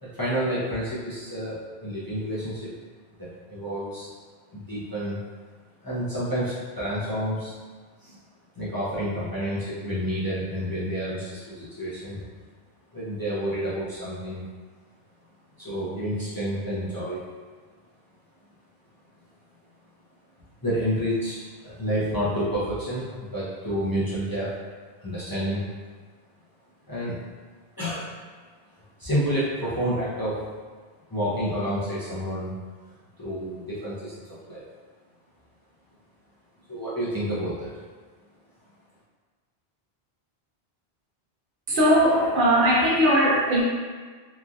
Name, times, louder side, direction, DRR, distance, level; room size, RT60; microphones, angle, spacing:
voice 1, 0.0-2.7 3.2-4.1 4.5-5.2 5.8-7.5 8.0-8.2 8.6-12.2 12.9-14.4 15.6-17.2 20.6-24.5 25.0-25.6 26.9-27.2 27.8-28.1 29.0-30.5 31.1-32.5 33.2-34.6 36.7-37.7, equal, 25° left, -10 dB, 0.5 m, -29 dB
voice 2, 41.7-43.6, equal, 60° right, -5 dB, 0.7 m, -19 dB
2.9 x 2.5 x 2.4 m, 1.5 s
omnidirectional pair, 1.0 m